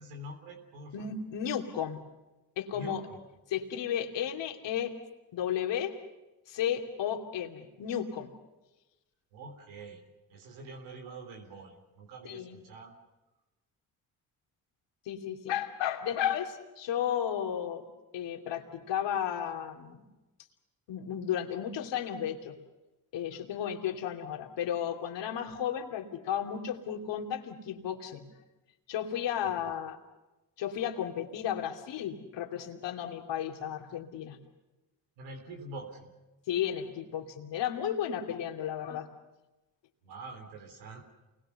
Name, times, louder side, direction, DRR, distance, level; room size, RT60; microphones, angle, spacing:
voice 1, 0.0-1.1 2.7-3.2 9.3-10.0 10.3-12.9 29.4-29.7 35.2-36.1 40.0-41.0, right 2 dB, 85° right, 4 dB, 3.6 m, -45 dB
voice 2, 0.9-2.0 2.6-3.0 3.5-4.9 5.3-5.9 6.5-8.3 12.2-12.6 15.1-17.8 18.1-20.0 20.9-22.6 23.1-28.3 28.9-30.0 30.6-34.4 36.5-39.1, left 9 dB, 70° left, 4 dB, 2.8 m, -33 dB
28.5 x 21.0 x 6.9 m, 1.1 s
hypercardioid pair, 50°, 44 cm